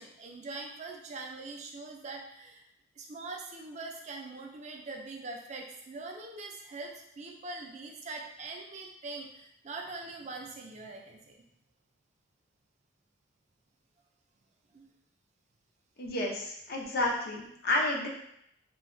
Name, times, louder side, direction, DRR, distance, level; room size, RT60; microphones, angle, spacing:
voice 1, 0.0-2.6 3.0-11.4 14.7-14.9, right 3 dB, 35° right, 1 dB, 0.3 m, -43 dB
voice 2, 16.0-18.1, left 1 dB, 50° left, -1 dB, 0.5 m, -30 dB
3.1 x 2.1 x 2.5 m, 0.75 s
head